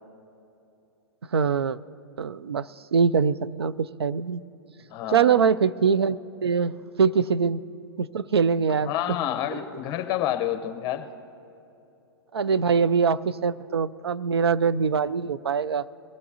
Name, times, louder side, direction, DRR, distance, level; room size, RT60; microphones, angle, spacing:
voice 1, 1.3-1.8 2.2-4.4 5.1-7.6 8.0-8.9 9.5-9.6 12.3-15.9, right 6 dB, 85° right, 16 dB, 0.4 m, -23 dB
voice 2, 4.9-5.5 8.8-11.1, left 11 dB, 35° left, 10 dB, 0.8 m, -29 dB
22.0 x 15.0 x 2.8 m, 2.8 s
hypercardioid pair, 125°, 13 cm